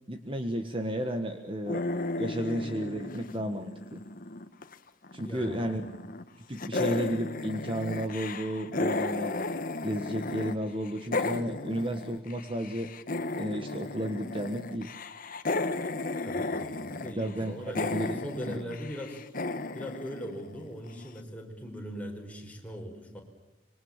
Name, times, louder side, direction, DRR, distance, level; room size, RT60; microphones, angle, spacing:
voice 1, 0.1-1.8 2.2-4.0 5.1-5.8 6.5-9.4 9.8-12.9 13.4-15.0 17.2-18.1 18.4-18.6, equal, 25° right, 6 dB, 1.5 m, -33 dB
sound 1, 1.7-4.7 5.0-6.3 6.6-10.5 10.8-20.9, left 2 dB, 45° left, 1.3 m, -34 dB
voice 2, 5.2-5.8 16.2-19.2 19.7-23.2, equal, 5° left, 1 dB, 4.9 m, -40 dB
26.0 x 23.0 x 7.3 m, 1.0 s
head